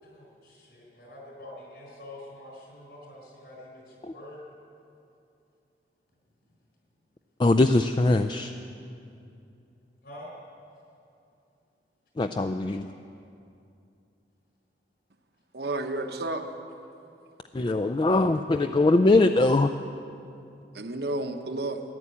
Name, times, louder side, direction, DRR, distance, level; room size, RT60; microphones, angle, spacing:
voice 1, 0.0-4.4 10.0-10.3, left 1 dB, 65° left, -1 dB, 4.9 m, -46 dB
voice 2, 7.4-8.5 12.2-12.9 17.5-19.7, left 2 dB, 25° left, 7 dB, 0.3 m, -22 dB
voice 3, 15.5-16.5 20.7-21.8, right 2 dB, 60° right, 6 dB, 1.1 m, -31 dB
15.5 x 11.0 x 8.4 m, 2.6 s
head